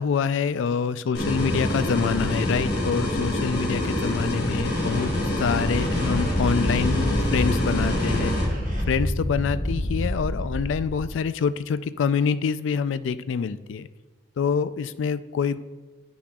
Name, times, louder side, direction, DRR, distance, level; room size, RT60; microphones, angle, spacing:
voice 1, 0.0-8.6 8.9-13.9 14.4-15.6, left 6 dB, 85° left, 14 dB, 0.3 m, -26 dB
sound 1, 1.1-8.4, left 1 dB, 60° left, 1.3 m, -26 dB
sound 2, 4.7-8.8, equal, 45° right, 1.3 m, -36 dB
Wind, 5.1-11.1, equal, 25° left, 1.0 m, -28 dB
9.9 x 6.0 x 2.3 m, 1.3 s
head